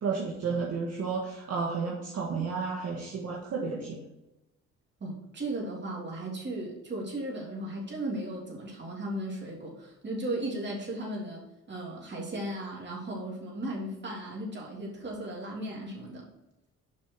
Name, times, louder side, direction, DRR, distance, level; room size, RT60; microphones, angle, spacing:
voice 1, 0.0-4.0, right 5 dB, 55° right, -2 dB, 1.6 m, -32 dB
voice 2, 5.0-11.4 11.7-16.2, right 1 dB, 35° right, -2 dB, 3.1 m, -36 dB
7.1 x 5.7 x 4.7 m, 0.94 s
cardioid pair, 90°, 30 cm